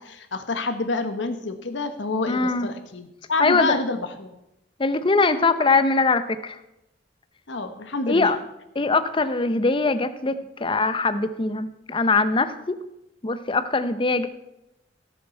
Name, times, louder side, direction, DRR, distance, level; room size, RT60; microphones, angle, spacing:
voice 1, 0.0-4.3 7.5-8.3, left 3 dB, 85° left, 8 dB, 1.2 m, -28 dB
voice 2, 2.3-2.7 3.4-3.8 4.8-6.6 8.1-8.4 8.8-12.8 13.2-14.3, left 3 dB, 30° left, 11 dB, 0.7 m, -22 dB
17.0 x 6.9 x 4.5 m, 0.89 s
head